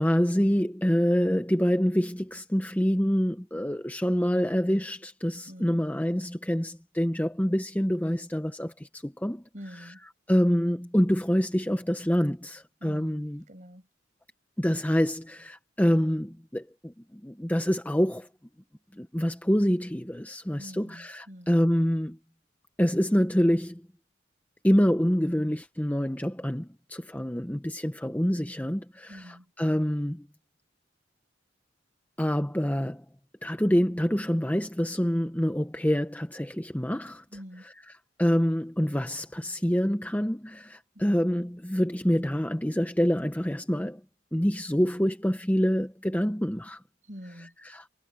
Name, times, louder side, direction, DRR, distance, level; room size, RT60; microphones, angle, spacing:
voice 1, 0.0-9.4 9.8-9.9 10.3-13.4 14.6-18.3 19.0-22.2 22.8-23.8 24.6-30.3 32.2-33.0 33.4-37.2 38.2-44.0 44.3-46.8 47.6-47.9, equal, 10° left, 0.9 m, -26 dB
voice 2, 5.5-5.8 9.5-10.0 12.8-13.9 20.6-21.6 29.1-29.5 37.3-37.7 40.9-41.1 47.1-47.5, equal, 40° right, 5.9 m, -46 dB
head